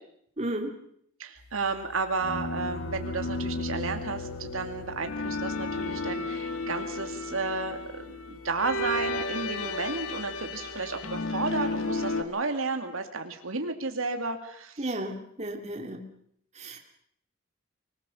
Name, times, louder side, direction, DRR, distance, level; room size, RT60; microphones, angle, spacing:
voice 1, 0.4-0.7 14.8-16.0 16.5-16.8, right 1 dB, 30° right, 3 dB, 2.6 m, -33 dB
voice 2, 1.2-14.9, right 3 dB, 75° right, 5 dB, 2.4 m, -32 dB
sound 1, 2.2-12.2, left 2 dB, 80° left, 1.9 m, -33 dB
25.0 x 19.5 x 7.1 m, 0.69 s
head